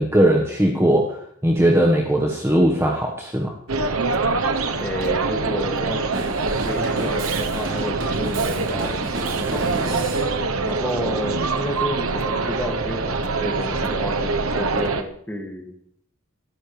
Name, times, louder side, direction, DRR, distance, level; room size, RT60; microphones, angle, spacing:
voice 1, 0.0-3.6, right 1 dB, 10° right, -1 dB, 1.5 m, -19 dB
sound 1, 3.7-15.0, right 3 dB, 85° right, 1.1 m, -24 dB
voice 2, 4.8-6.0 6.6-9.0 9.3-9.9 10.6-15.7, equal, 10° left, 2 dB, 2.4 m, -30 dB
Drum kit, 6.1-10.3, right 2 dB, 65° right, 4.4 m, -31 dB
24.0 x 13.5 x 3.4 m, 0.66 s
head